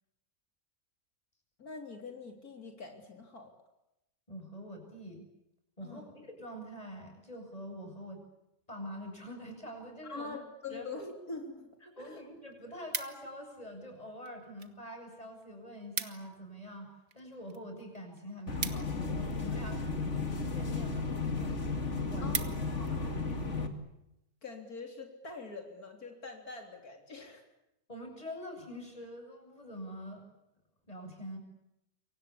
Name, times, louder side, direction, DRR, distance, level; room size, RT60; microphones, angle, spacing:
voice 1, 1.6-3.5 5.8-6.1 10.1-12.2 22.2-23.2 24.4-27.4, left 3 dB, 85° left, 3 dB, 4.0 m, -44 dB
voice 2, 4.3-5.3 5.8-6.0 6.4-8.2 8.7-10.3 10.7-10.9 12.0-21.1 21.4-21.6 22.1-22.4 22.8-23.7 27.9-30.2 30.9-31.4, equal, 25° left, 4 dB, 8.0 m, -45 dB
sound 1, 11.7-11.8 12.2-13.5 14.2-14.8 15.1-15.2 15.4-15.5 15.7-16.4 16.7-19.6 20.3-20.6 21.1-21.2 21.6-21.7 21.9-22.9 23.4-23.6, right 6 dB, 65° right, 2.0 m, -40 dB
sound 2, 18.5-23.7, left 3 dB, 50° left, 2.8 m, -34 dB
29.0 x 24.0 x 8.5 m, 0.86 s
omnidirectional pair, 1.5 m